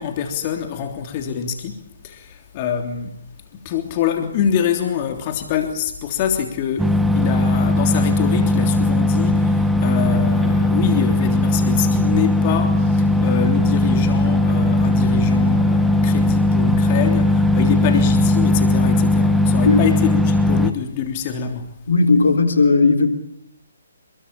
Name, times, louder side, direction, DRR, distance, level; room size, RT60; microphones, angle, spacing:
voice 1, 0.0-3.2 3.6-21.7, left 8 dB, 35° left, 3.3 m, -25 dB
sound 1, 6.8-20.7, left 1 dB, ahead, 1.4 m, -18 dB
voice 2, 21.9-23.1, left 3 dB, 70° left, 3.8 m, -15 dB
29.0 x 22.0 x 8.8 m
figure-of-eight pair, 140°, 0 cm